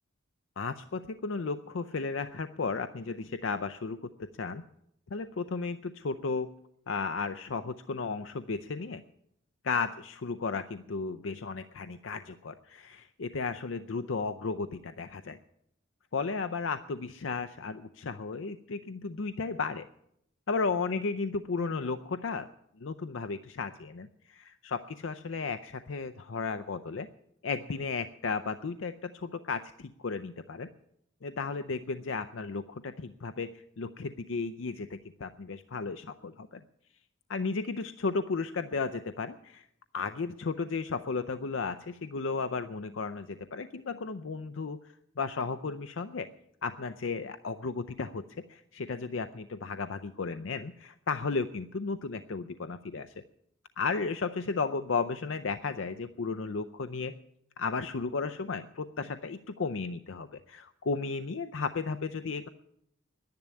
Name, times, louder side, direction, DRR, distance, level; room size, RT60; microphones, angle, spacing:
voice 1, 0.6-4.6 5.1-6.5 6.9-9.0 9.6-15.4 16.1-19.9 20.5-22.5 22.8-27.1 27.4-30.7 31.2-36.6 37.3-39.7 39.9-46.3 46.6-48.2 48.5-53.1 53.8-57.2 57.6-62.5, left 4 dB, 70° left, 10 dB, 0.5 m, -34 dB
11.0 x 10.5 x 9.5 m, 0.74 s
head